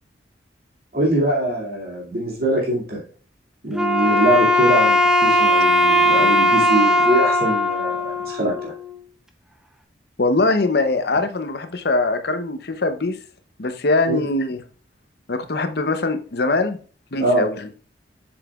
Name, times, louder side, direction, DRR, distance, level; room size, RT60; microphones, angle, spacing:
voice 1, 0.9-3.0 3.6-8.7 14.1-14.2 17.2-17.5, right 1 dB, 55° right, -3 dB, 2.4 m, -22 dB
Wind instrument woodwind instrument, 3.7-8.9, left 1 dB, 5° right, 0.7 m, -18 dB
voice 2, 10.2-13.2 13.6-14.6 15.3-16.8 17.1-17.7, left 2 dB, 60° left, 9 dB, 0.8 m, -22 dB
7.4 x 7.2 x 2.4 m, 0.40 s
head